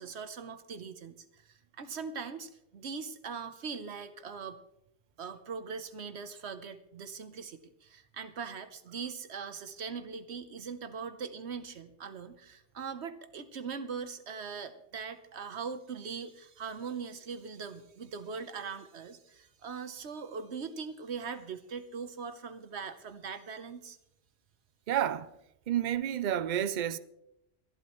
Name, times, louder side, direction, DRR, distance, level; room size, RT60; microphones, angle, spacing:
voice 1, 0.0-4.6 5.2-24.0, right 5 dB, 75° right, 1.2 m, -41 dB
voice 2, 24.9-25.3 25.7-27.0, right 10 dB, 50° right, 0.6 m, -30 dB
22.5 x 12.0 x 3.1 m
omnidirectional pair, 1.1 m